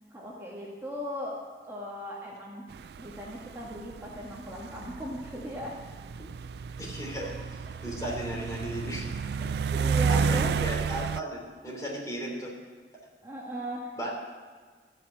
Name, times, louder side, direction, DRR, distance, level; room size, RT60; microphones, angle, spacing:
voice 1, 0.1-1.4 1.7-2.6 3.0-5.8 7.2-7.3 9.7-10.5 13.2-14.0, equal, 15° right, -4 dB, 1.8 m, -38 dB
sound 1, 2.7-11.2, right 5 dB, 65° right, 0.3 m, -31 dB
voice 2, 6.8-7.3 7.8-9.1 9.4-9.5 10.1-12.5 14.0-14.1, equal, 20° left, -2 dB, 3.2 m, -35 dB
14.0 x 9.0 x 8.2 m, 1.5 s
head